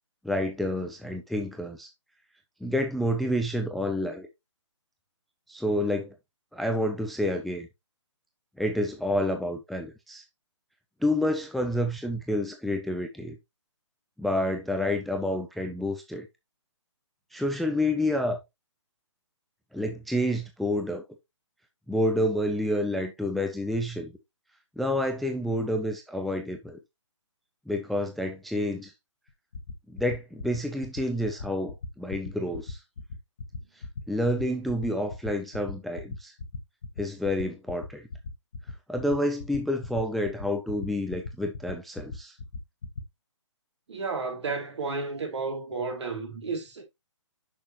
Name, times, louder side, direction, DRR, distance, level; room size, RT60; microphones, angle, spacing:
voice 1, 0.2-1.9 2.6-4.3 5.5-6.1 6.5-7.7 8.6-10.2 11.0-13.4 14.2-16.3 17.3-18.4 19.7-21.0 21.9-24.1 24.8-26.8 27.7-28.9 29.9-32.8 34.1-36.3 37.0-38.1 38.9-42.3, left 1 dB, ahead, 0.4 m, -29 dB
sound 1, 29.3-43.0, left 4 dB, 70° left, 1.3 m, -37 dB
voice 2, 43.9-46.8, right 4 dB, 65° right, 2.8 m, -32 dB
6.6 x 6.2 x 3.0 m
hypercardioid pair, 145°, 16 cm